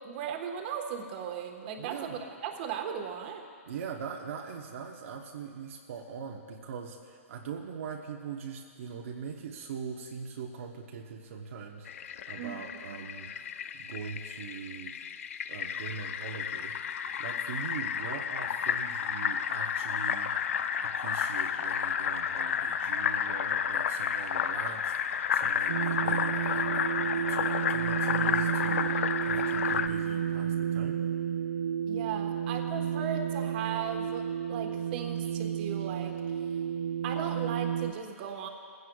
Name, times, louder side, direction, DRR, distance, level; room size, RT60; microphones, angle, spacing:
voice 1, 0.0-3.5 12.4-12.6 12.9-13.1 31.9-36.2 37.0-38.5, right 7 dB, 40° right, 3 dB, 1.4 m, -37 dB
voice 2, 1.8-2.2 3.7-15.0 15.5-16.7 17.2-20.3 20.8-31.0, right 6 dB, 65° right, 0 dB, 1.0 m, -42 dB
Fill (with liquid), 11.9-29.9, left 8 dB, 70° left, 0.6 m, -31 dB
sound 1, 25.7-37.9, right 9 dB, 85° right, 0.4 m, -32 dB
20.0 x 16.0 x 2.4 m, 2.1 s
hypercardioid pair, 155°, 8 cm